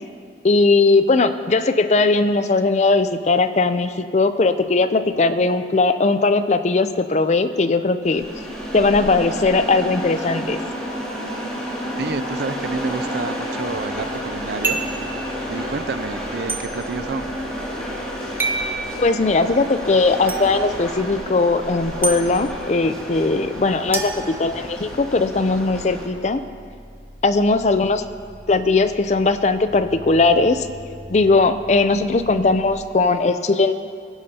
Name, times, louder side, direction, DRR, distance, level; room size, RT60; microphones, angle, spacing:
voice 1, 0.4-8.2 8.7-10.6 19.0-26.4 27.2-28.0 28.5-30.7 31.1-33.7, left 3 dB, 40° left, 11 dB, 0.5 m, -19 dB
sound 1, 8.0-26.1, equal, 5° left, 2.4 m, -30 dB
voice 2, 12.0-14.8 15.5-17.3, right 4 dB, 60° right, 13 dB, 0.4 m, -29 dB
sound 2, 13.6-20.9 23.4-32.7, equal, 40° right, 3.8 m, -44 dB
sound 3, 14.6-15.0 16.5-16.6 18.4-18.7 20.3-20.4 22.0-22.2 23.9-25.0, right 3 dB, 10° right, 0.8 m, -26 dB
20.5 x 10.5 x 2.8 m, 2.2 s
head